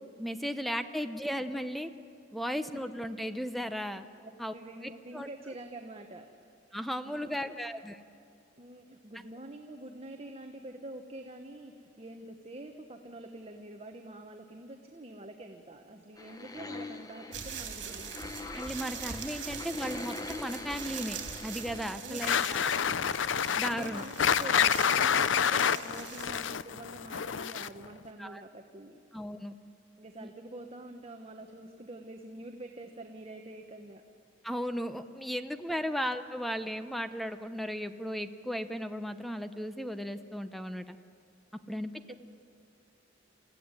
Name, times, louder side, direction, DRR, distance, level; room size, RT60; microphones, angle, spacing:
voice 1, 0.2-1.9 2.3-4.1 4.4-4.5 5.1-5.3 6.7-8.0 18.5-22.8 23.6-24.0 28.2-28.4 29.1-29.6 30.2-30.3 34.4-41.0 41.7-41.9, equal, ahead, 9 dB, 0.9 m, -35 dB
voice 2, 4.2-6.3 7.1-7.6 8.6-18.3 21.9-22.4 22.8-22.9 23.3-29.0 30.0-34.0 35.7-35.8 41.6-41.7 42.1-42.2, right 1 dB, 35° right, 4 dB, 1.3 m, -46 dB
sound 1, 16.2-22.7 23.1-23.2 23.5-23.6 23.9-24.0 24.2-24.3, left 2 dB, 20° left, 1.3 m, -43 dB
sound 2, 17.3-26.5, right 7 dB, 70° right, 3.1 m, -43 dB
sound 3, 22.2-27.9, left 8 dB, 80° left, 0.6 m, -28 dB
28.0 x 15.5 x 9.8 m, 2.5 s
head